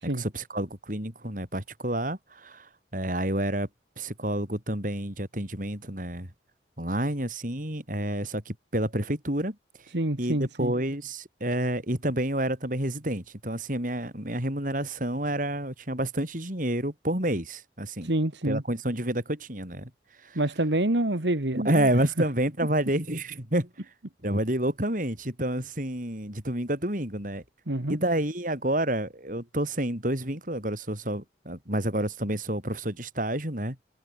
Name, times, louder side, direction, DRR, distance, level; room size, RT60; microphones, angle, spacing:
voice 1, 0.0-3.7 4.0-6.3 6.8-9.6 10.2-18.1 18.4-19.9 20.2-20.4 21.5-23.7 24.2-27.4 27.9-33.8, right 1 dB, 45° right, 6.1 m, -29 dB
voice 2, 9.9-10.7 18.0-18.6 20.4-21.9 27.7-28.0, right 1 dB, 80° right, 2.1 m, -27 dB
head